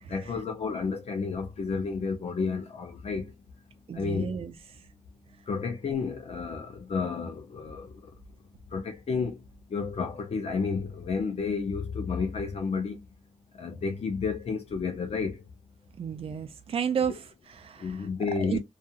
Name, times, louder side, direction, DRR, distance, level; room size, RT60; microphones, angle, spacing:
voice 1, 0.1-3.3 3.9-4.4 5.5-8.1 8.7-9.4 9.7-13.0 13.5-15.4 17.8-18.6, left 5 dB, 65° left, 0.5 m, -31 dB
voice 2, 3.9-4.5 16.0-18.1 18.4-18.6, right 7 dB, 55° right, 0.4 m, -32 dB
2.8 x 2.3 x 2.3 m
wide cardioid pair, 115°, 12 cm